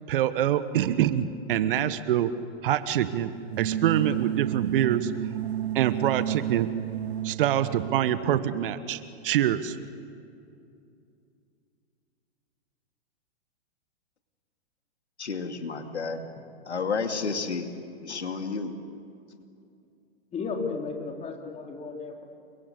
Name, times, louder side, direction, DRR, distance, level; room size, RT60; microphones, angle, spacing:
voice 1, 0.1-2.3 2.6-3.3 3.6-5.1 5.7-6.7 7.2-9.8, right 11 dB, 55° right, 13 dB, 1.3 m, -25 dB
sound 1, 3.4-8.2, right 11 dB, 70° right, 0.7 m, -31 dB
voice 2, 15.2-16.2 16.7-17.7 18.0-18.7, left 4 dB, 80° left, 6 dB, 2.5 m, -31 dB
voice 3, 20.3-22.2, left 4 dB, 20° left, 2 dB, 3.9 m, -34 dB
29.0 x 24.0 x 8.2 m, 2.6 s
figure-of-eight pair, 110°, 33 cm